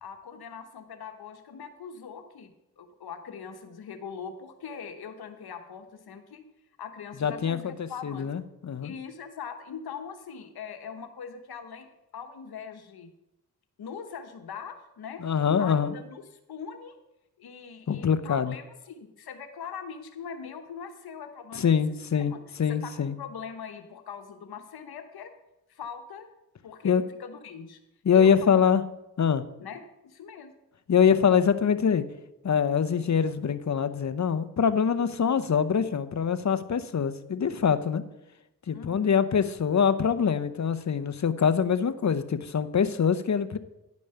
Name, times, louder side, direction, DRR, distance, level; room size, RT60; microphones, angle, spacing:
voice 1, 0.0-2.5 2.8-6.4 6.8-8.3 8.8-11.9 12.1-13.1 13.8-15.2 15.6-16.2 16.5-17.0 17.4-21.7 22.1-22.4 22.7-25.3 25.7-26.3 26.6-27.8 28.1-28.5 29.6-30.5 38.7-39.2, left 6 dB, 90° left, 8 dB, 1.1 m, -41 dB
voice 2, 7.2-8.9 15.2-15.9 17.9-18.5 21.5-22.3 22.6-23.1 26.8-27.0 28.0-28.8 29.2-29.4 30.9-32.0 32.4-38.0 38.7-43.6, left 7 dB, 50° left, 11 dB, 0.8 m, -24 dB
10.5 x 5.4 x 6.7 m, 0.89 s
cardioid pair, 50°, 37 cm